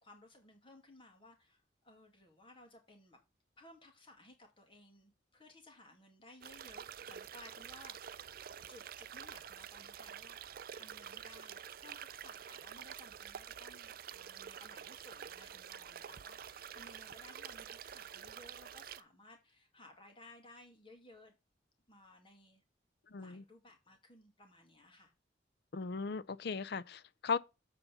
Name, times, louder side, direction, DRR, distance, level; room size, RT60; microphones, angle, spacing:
voice 1, 0.0-3.2 3.6-8.2 8.7-10.4 10.7-21.4 21.9-22.6 23.2-25.1, left 1 dB, 30° left, 2.4 m, -59 dB
sound 1, 6.4-19.0, right 8 dB, 50° right, 0.4 m, -48 dB
voice 2, 23.1-23.4 25.7-27.4, left 5 dB, 60° left, 0.5 m, -37 dB
8.0 x 4.1 x 7.0 m
head